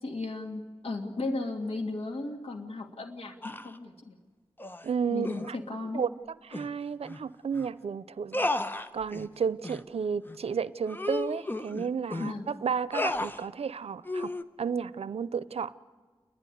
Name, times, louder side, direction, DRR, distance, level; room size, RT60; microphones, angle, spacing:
voice 1, 0.0-4.2 5.1-6.0 12.2-12.5, left 2 dB, 80° left, 4 dB, 2.1 m, -35 dB
sound 1, 3.4-3.8 4.6-4.9 5.2-5.5 6.5-6.7 7.1-7.2 7.5-7.7 8.3-9.3 9.6-9.8 10.3-10.4 10.9-12.3 12.9-13.4 14.0-14.4, left 2 dB, 20° left, 1.0 m, -33 dB
voice 2, 4.8-5.6 5.9-6.1 6.5-8.5 8.9-14.3 14.6-15.7, right 6 dB, 85° right, 17 dB, 0.6 m, -32 dB
29.0 x 11.5 x 9.9 m, 1.5 s
cardioid pair, 55°, 10 cm